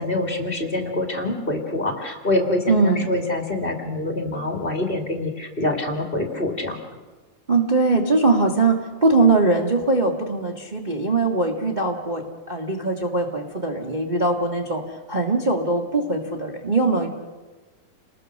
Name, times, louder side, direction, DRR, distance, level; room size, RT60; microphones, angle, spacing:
voice 1, 0.0-6.8, left 2 dB, 20° left, 3 dB, 1.9 m, -25 dB
voice 2, 2.7-3.1 7.5-14.8 15.1-17.1, right 3 dB, 45° right, 0 dB, 0.5 m, -21 dB
29.5 x 20.5 x 6.4 m, 1.3 s
omnidirectional pair, 4.0 m